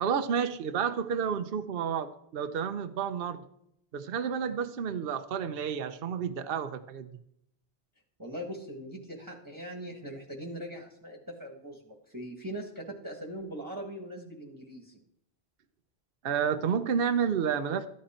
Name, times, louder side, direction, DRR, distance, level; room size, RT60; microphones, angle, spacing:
voice 1, 0.0-3.4 3.9-7.1 16.2-17.9, right 7 dB, 60° right, 9 dB, 0.9 m, -30 dB
voice 2, 8.2-15.0, equal, 20° right, 1 dB, 1.6 m, -41 dB
14.0 x 11.5 x 4.4 m, 0.76 s
omnidirectional pair, 1.1 m